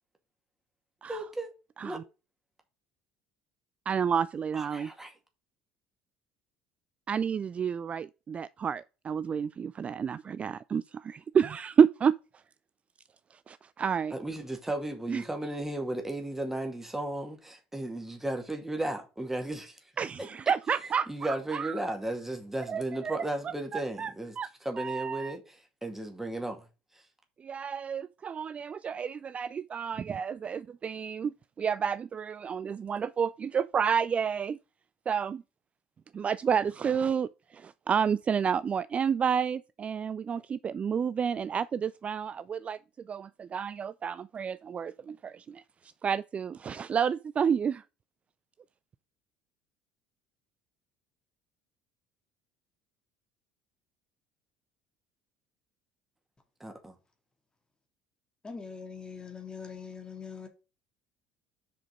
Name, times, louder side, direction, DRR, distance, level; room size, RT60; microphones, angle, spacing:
voice 1, 1.1-1.5 1.8-2.0 4.5-5.1 14.1-19.8 21.1-24.3 24.6-26.6 56.6-56.9, right 1 dB, 10° right, 2.2 m, -35 dB
voice 2, 3.9-4.9 7.1-12.1 13.5-14.1 15.1-15.2 20.0-21.8 22.7-24.5 24.8-25.4 27.4-34.6 35.1-35.4 36.1-42.8 43.1-47.8, right 7 dB, 30° right, 0.3 m, -30 dB
voice 3, 58.4-60.5, left 5 dB, 20° left, 2.2 m, -42 dB
6.7 x 5.1 x 5.2 m
figure-of-eight pair, 60°, 4 cm